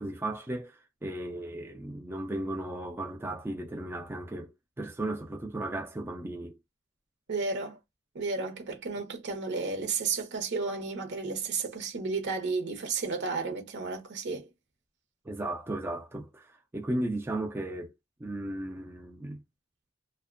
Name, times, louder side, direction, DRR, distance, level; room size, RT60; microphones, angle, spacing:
voice 1, 0.0-6.5 15.3-17.9 18.2-19.4, right 1 dB, 10° right, 0.3 m, -35 dB
voice 2, 7.3-7.8 8.1-14.5, right 4 dB, 60° right, 0.7 m, -32 dB
2.5 x 2.1 x 2.4 m
head